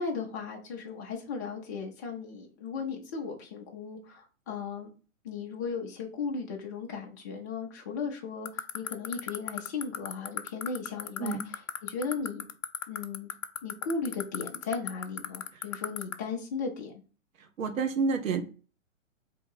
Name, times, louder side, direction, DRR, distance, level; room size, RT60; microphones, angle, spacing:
voice 1, 0.0-4.9 5.2-12.5 12.9-13.3 13.6-17.0, left 5 dB, 15° left, 0 dB, 0.4 m, -36 dB
sound 1, 8.4-16.1, left 11 dB, 65° left, 0.7 m, -31 dB
voice 2, 17.6-18.4, right 5 dB, 75° right, 7 dB, 1.0 m, -28 dB
3.8 x 2.7 x 4.5 m, 0.36 s
hypercardioid pair, 145°, 40 cm